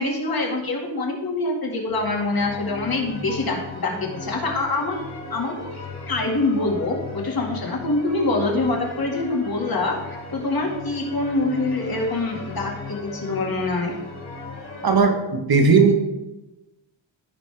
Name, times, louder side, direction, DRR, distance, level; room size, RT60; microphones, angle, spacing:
voice 1, 0.0-5.0 5.3-5.7 6.0-13.9, left 2 dB, 50° left, -1 dB, 2.2 m, -25 dB
sound 1, 1.9-15.0, left 3 dB, 35° left, 2.6 m, -37 dB
voice 2, 14.8-15.9, right 4 dB, 55° right, 3 dB, 1.6 m, -17 dB
15.5 x 5.2 x 3.5 m, 1.0 s
wide cardioid pair, 115°, 45 cm